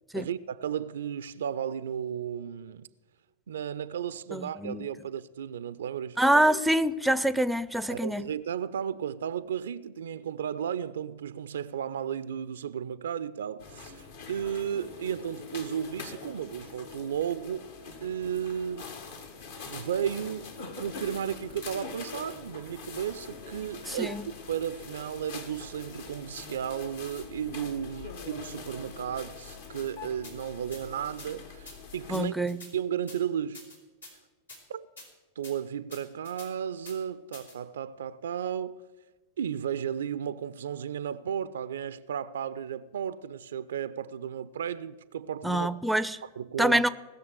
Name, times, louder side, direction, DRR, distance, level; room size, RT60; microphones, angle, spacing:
voice 1, 0.1-2.9 3.5-6.2 7.9-14.0 14.3-17.7 18.0-18.9 19.7-32.3 32.7-33.6 34.7-34.9 35.4-38.8 39.4-45.7 46.4-46.8, right 9 dB, 65° right, 0.4 m, -34 dB
voice 2, 4.3-4.9 6.2-8.3 23.9-24.2 32.1-32.6 45.4-46.2 46.6-46.9, right 1 dB, ahead, 0.5 m, -25 dB
sound 1, 13.6-32.2, left 5 dB, 60° left, 1.7 m, -44 dB
sound 2, 30.2-30.3 30.7-30.8 31.2-31.3 31.6-31.8 32.1-32.7 33.1-33.2 33.5-34.1 34.5-34.6 35.0-35.1 35.4-35.5 35.9-36.5 36.8-37.0 37.3-37.5, left 2 dB, 80° left, 3.6 m, -46 dB
18.5 x 6.9 x 8.0 m
figure-of-eight pair, 90°, 0 cm